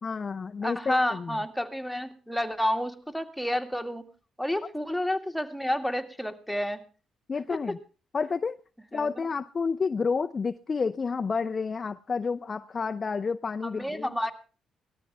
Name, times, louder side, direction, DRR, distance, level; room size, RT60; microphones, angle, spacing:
voice 1, 0.0-1.4 7.3-7.8 8.1-8.6 8.9-14.2, left 5 dB, 35° left, 8 dB, 0.6 m, -30 dB
voice 2, 0.6-4.1 4.4-6.8 8.9-9.1 13.7-14.3, left 1 dB, ahead, 4 dB, 2.2 m, -30 dB
18.5 x 13.0 x 3.5 m, 0.36 s
cardioid pair, 90°, 0 cm